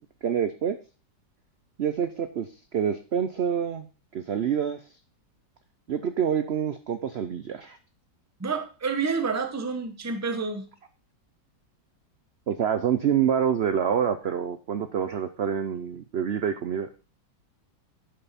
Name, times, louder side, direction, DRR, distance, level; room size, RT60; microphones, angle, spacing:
voice 1, 0.2-0.8 1.8-3.8 4.1-4.8 5.9-7.8 12.5-16.9, right 8 dB, 80° right, 10 dB, 0.5 m, -27 dB
voice 2, 8.4-10.7, right 4 dB, 15° right, 7 dB, 0.7 m, -29 dB
11.0 x 5.7 x 4.1 m, 0.36 s
omnidirectional pair, 1.9 m